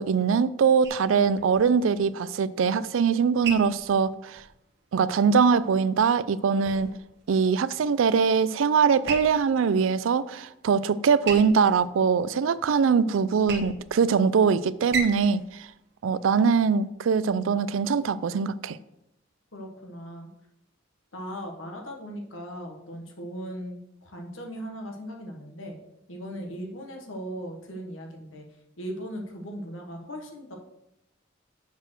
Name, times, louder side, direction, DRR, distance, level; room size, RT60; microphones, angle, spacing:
voice 1, 0.0-4.4 4.9-6.9 7.3-15.7 16.0-18.8, right 6 dB, 85° right, 0.4 m, -22 dB
sound 1, 0.8-16.9, right 4 dB, 60° right, 1.1 m, -40 dB
voice 2, 19.5-20.3 21.1-25.8 26.1-28.5 28.8-30.6, equal, 80° left, 1.3 m, -38 dB
7.0 x 4.4 x 6.3 m
head